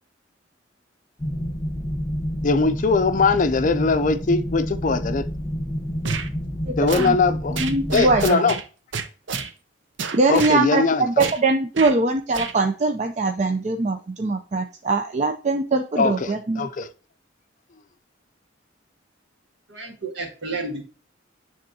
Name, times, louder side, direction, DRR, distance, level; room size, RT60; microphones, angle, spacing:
sound 1, 1.2-8.3, equal, 20° left, 1.2 m, -29 dB
voice 1, 2.4-5.2 6.8-7.6 7.9-8.6 10.3-11.3 16.0-16.9, left 4 dB, 45° left, 0.5 m, -21 dB
sound 2, 6.0-6.3 6.9-7.1 7.6-8.6 8.9-9.5 10.0-10.6 11.2-11.4 11.7-11.9 12.3-12.5, right 5 dB, 85° right, 0.7 m, -29 dB
voice 2, 6.7-7.2 7.6-8.5 10.1-16.7, right 3 dB, 40° right, 0.5 m, -22 dB
voice 3, 19.7-20.8, right 3 dB, 65° right, 1.9 m, -31 dB
10.5 x 3.6 x 2.8 m
head